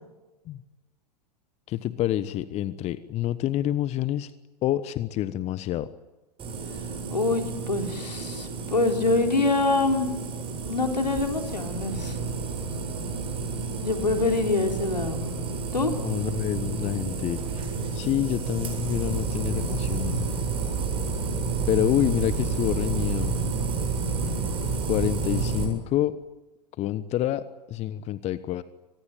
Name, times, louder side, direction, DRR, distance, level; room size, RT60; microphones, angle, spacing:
voice 1, 1.7-4.3 4.6-5.9 16.0-20.3 21.7-23.4 24.9-26.1 26.8-28.6, left 13 dB, 30° left, 15 dB, 1.1 m, -27 dB
sound 1, 6.4-25.7, right 4 dB, 25° right, 7.5 m, -30 dB
voice 2, 7.1-10.1 10.6-12.2 13.8-15.2 15.7-15.9, left 3 dB, 85° left, 5 dB, 3.9 m, -25 dB
25.5 x 19.5 x 9.1 m, 1.1 s
figure-of-eight pair, 95°, 21 cm